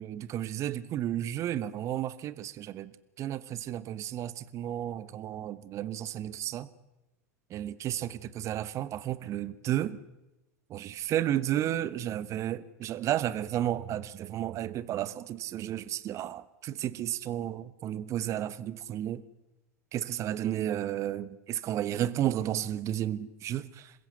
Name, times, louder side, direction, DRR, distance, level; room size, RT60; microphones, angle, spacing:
voice 1, 0.0-2.9 3.2-6.7 7.5-10.0 10.7-19.2 19.9-23.9, right 12 dB, 40° right, 1.2 m, -32 dB
27.5 x 16.0 x 8.2 m
figure-of-eight pair, 85°, 8 cm